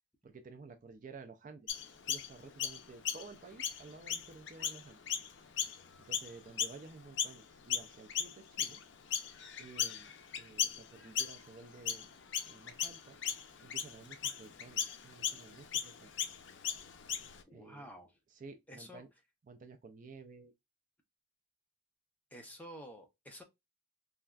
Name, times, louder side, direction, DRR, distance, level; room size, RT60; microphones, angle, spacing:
voice 1, 0.2-5.0 6.1-8.8 9.6-12.1 12.5-13.2 13.6-16.3 17.5-17.9 18.3-19.1 19.5-20.5, right 4 dB, 40° right, 0.3 m, -53 dB
Chirp tweet, 1.7-7.4 7.7-17.4, left 8 dB, 65° left, 0.5 m, -37 dB
voice 2, 17.5-18.2 18.7-19.0 22.3-23.4, equal, 10° left, 0.6 m, -50 dB
3.2 x 2.4 x 2.2 m
head